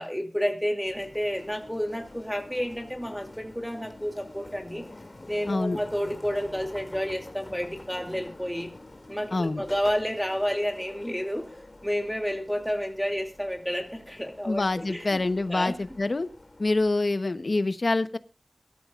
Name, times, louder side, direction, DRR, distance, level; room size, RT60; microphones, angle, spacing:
voice 1, 0.0-4.9 5.3-8.7 9.1-11.5 11.8-15.2 15.5-15.8, equal, 5° left, 2 dB, 2.7 m, -30 dB
sound 1, 0.8-16.9, left 2 dB, 45° left, 2.6 m, -47 dB
voice 2, 5.5-5.8 9.3-9.6 14.4-16.3 16.6-18.2, left 2 dB, 65° left, 10 dB, 1.1 m, -26 dB
23.0 x 13.5 x 2.5 m, 0.32 s
wide cardioid pair, 50°, 0 cm